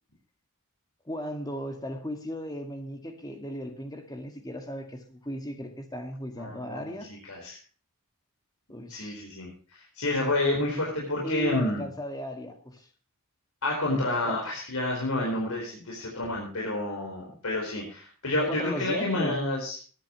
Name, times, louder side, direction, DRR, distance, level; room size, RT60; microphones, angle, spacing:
voice 1, 1.1-7.1 8.7-9.2 11.2-12.9 13.9-14.4 18.5-19.4, equal, 15° left, 2.0 m, -36 dB
voice 2, 6.4-7.0 7.3-7.6 8.9-11.8 13.6-19.8, left 2 dB, 80° left, 4.6 m, -29 dB
20.0 x 10.5 x 3.1 m
head